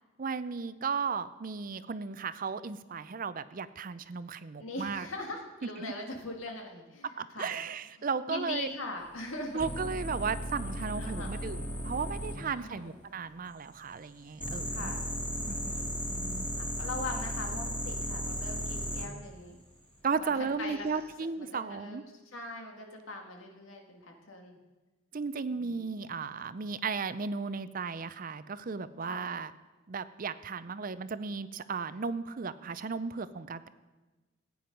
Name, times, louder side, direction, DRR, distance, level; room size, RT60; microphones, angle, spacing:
voice 1, 0.2-5.1 5.8-5.9 7.2-8.7 9.5-14.9 15.5-15.6 16.1-16.5 20.0-22.0 25.1-29.5 29.9-33.7, right 5 dB, 45° right, 14 dB, 0.5 m, -35 dB
voice 2, 4.6-7.6 8.0-9.7 11.0-11.4 12.4-13.0 14.6-15.1 15.4-16.0 16.5-19.6 20.2-20.9 21.4-22.1 22.3-24.6 25.5-25.9 29.0-29.3, left 2 dB, 80° left, 2 dB, 1.9 m, -41 dB
sound 1, 9.6-12.4 14.4-19.1 20.7-21.1, equal, 5° left, 2.2 m, -35 dB
16.0 x 9.4 x 5.3 m, 1.2 s
head